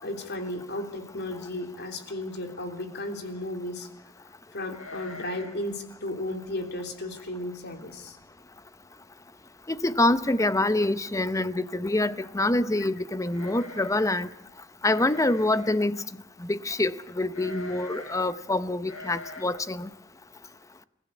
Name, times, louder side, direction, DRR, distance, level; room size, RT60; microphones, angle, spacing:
voice 1, 0.0-3.9 4.5-8.2, left 1 dB, 55° left, 3.3 m, -34 dB
sound 1, 4.7-5.7 5.9-6.0 6.5-6.8 7.3-7.4 7.7-8.2 8.6-8.7 9.8-9.9 10.2-10.6 13.3-14.3 14.8-15.8 17.3-18.3 18.8-19.4, left 3 dB, 85° left, 4.0 m, -43 dB
voice 2, 9.8-14.3 14.8-16.0 16.5-19.9, left 2 dB, 15° left, 0.8 m, -25 dB
27.5 x 15.5 x 8.4 m
head